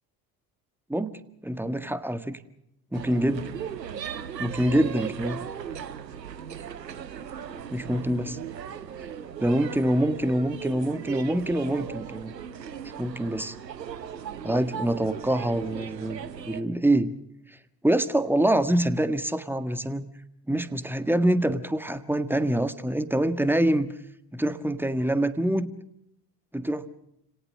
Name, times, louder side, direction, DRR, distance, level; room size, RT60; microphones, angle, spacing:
voice 1, 0.9-2.4 2.9-3.5 4.4-5.5 7.7-8.4 9.4-12.3 13.0-13.5 14.4-16.2 16.5-17.1 17.8-20.1 20.5-23.9 24.3-25.7 26.5-26.9, right 1 dB, 5° right, 12 dB, 1.6 m, -25 dB
sound 1, 2.9-16.6, right 8 dB, 90° right, 1.0 m, -37 dB
30.0 x 18.0 x 6.6 m, 0.78 s
figure-of-eight pair, 55°, 48 cm